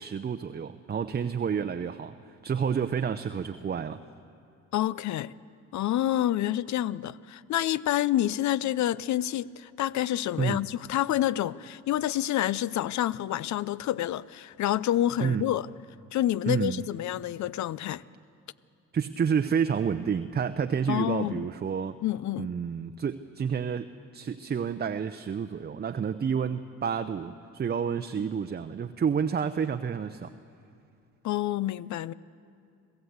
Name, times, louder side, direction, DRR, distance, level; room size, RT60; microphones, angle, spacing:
voice 1, 0.0-2.2 2.4-4.0 10.4-10.6 15.2-15.5 16.5-16.8 18.9-22.0 22.4-23.9 24.1-30.3, right 7 dB, 35° right, 0.7 m, -29 dB
voice 2, 4.7-5.3 5.7-15.7 16.1-18.0 20.9-21.4 22.0-22.5 31.2-32.1, left 13 dB, 70° left, 0.6 m, -28 dB
26.0 x 15.5 x 8.1 m
cardioid pair, 90°, 30 cm